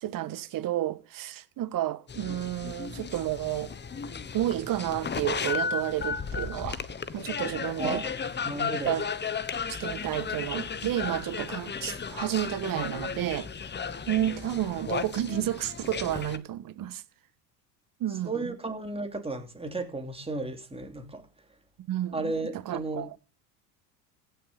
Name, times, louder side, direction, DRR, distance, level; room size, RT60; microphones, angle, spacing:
voice 1, 0.0-3.7 4.3-6.8 7.1-8.0 8.8-9.1 9.7-13.5 14.1-17.0 18.0-18.5 21.9-22.3 22.6-23.2, right 13 dB, 45° right, 1.4 m, -31 dB
sound 1, 2.1-16.4, left 6 dB, 25° left, 1.3 m, -34 dB
voice 2, 7.8-8.1 8.5-8.9 18.3-21.2 22.1-23.1, right 2 dB, 10° right, 3.0 m, -34 dB
16.0 x 6.9 x 5.5 m
hypercardioid pair, 80°, 46 cm